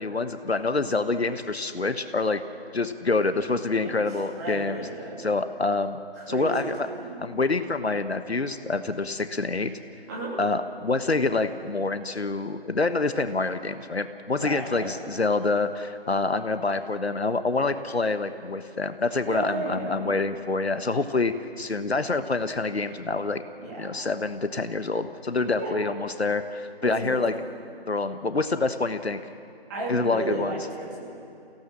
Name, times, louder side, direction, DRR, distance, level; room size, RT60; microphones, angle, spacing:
voice 1, 0.0-2.4 2.7-4.8 5.2-6.0 6.3-6.9 7.2-9.7 10.4-23.4 23.8-27.3 27.9-29.2 29.9-30.6, left 3 dB, 80° left, 10 dB, 1.3 m, -26 dB
voice 2, 3.8-5.3 6.1-7.2 10.1-10.4 14.4-14.9 19.3-20.0 23.6-24.0 25.6-25.8 26.8-27.2 29.7-31.2, right 2 dB, 15° right, -5 dB, 3.2 m, -34 dB
26.5 x 16.5 x 7.3 m, 2.5 s
figure-of-eight pair, 160°, 32 cm